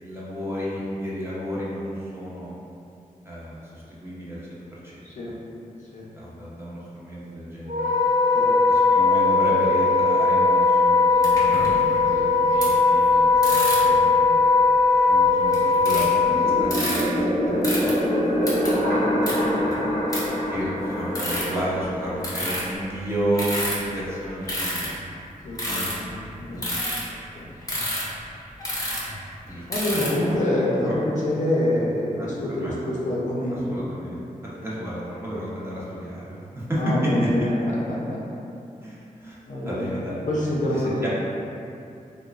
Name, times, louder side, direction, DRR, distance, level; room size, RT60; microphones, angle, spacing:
voice 1, 0.0-2.5 3.2-4.6 4.8-4.9 6.2-7.9 8.7-14.6 14.9-17.9 19.6-19.9 20.5-24.9 25.6-26.1 26.5-26.7 29.4-29.6 30.8-30.9 32.2-32.7 33.7-34.2 34.5-37.3 38.8-39.4 39.6-40.2 40.7-41.1, equal, 15° right, -8 dB, 0.6 m, -32 dB
Wind instrument woodwind instrument, 7.7-16.7, left 4 dB, 65° right, 0.7 m, -19 dB
sound 1, 11.2-12.0 12.6-12.7 13.4-14.0 14.8-14.9 15.4-16.3 16.6-17.0 17.6-17.9 18.5-18.8 19.3-19.4 19.7-19.8 20.1-20.2 20.6-20.7 21.2-21.6 22.2-22.6 23.3-23.9 24.4-25.1 25.6-26.2 26.6-27.0 27.6-28.2 28.6-29.1 29.7-30.3, left 1 dB, 25° left, 0.7 m, -28 dB
sound 2, 16.2-22.8, equal, 85° right, 0.9 m, -25 dB
voice 2, 25.4-26.0 26.4-26.7 27.4-27.5 29.7-33.8 36.8-38.2 39.5-39.8 40.3-41.1, left 1 dB, 60° left, -5 dB, 0.5 m, -26 dB
2.9 x 2.1 x 2.3 m, 2.6 s
wide cardioid pair, 75°, 14 cm